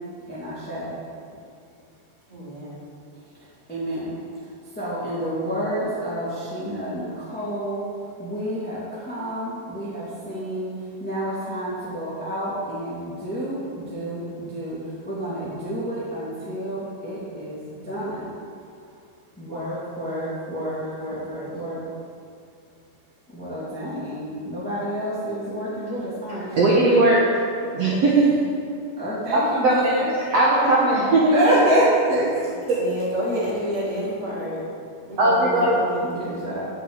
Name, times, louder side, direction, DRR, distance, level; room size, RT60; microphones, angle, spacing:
voice 1, 0.3-0.9 3.7-4.2 4.7-7.8 8.2-10.7 11.0-18.3 19.4-21.8 23.3-26.9 29.0-30.1 31.3-32.5 36.0-36.7, right 1 dB, 5° left, -9 dB, 1.8 m, -28 dB
voice 2, 2.3-2.9 19.4-21.5 32.7-34.6 35.0-36.4, equal, 15° right, -7 dB, 2.3 m, -31 dB
voice 3, 26.6-27.3 27.7-28.4 29.3-29.9 30.3-31.3 35.2-35.8, right 2 dB, 65° right, -5 dB, 1.6 m, -18 dB
8.0 x 7.8 x 8.1 m, 2.3 s
omnidirectional pair, 4.7 m